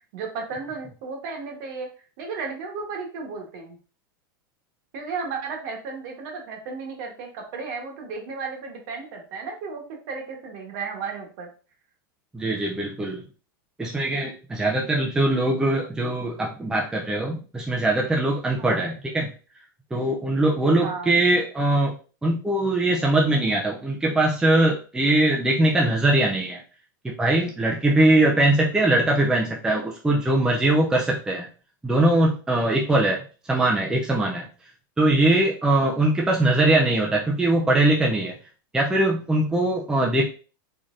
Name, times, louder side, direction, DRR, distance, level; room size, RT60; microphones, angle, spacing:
voice 1, 0.1-1.9 2.2-3.8 4.9-11.5 18.6-18.8 20.7-21.1, right 4 dB, 50° right, 2 dB, 1.2 m, -34 dB
voice 2, 12.3-13.2 13.8-19.3 19.9-21.9 22.2-26.6 27.0-31.5 31.8-33.2 33.5-34.5 35.0-38.3 38.7-40.3, right 2 dB, 5° right, -1 dB, 0.4 m, -21 dB
3.9 x 3.2 x 2.5 m, 0.37 s
supercardioid pair, 140°, 12 cm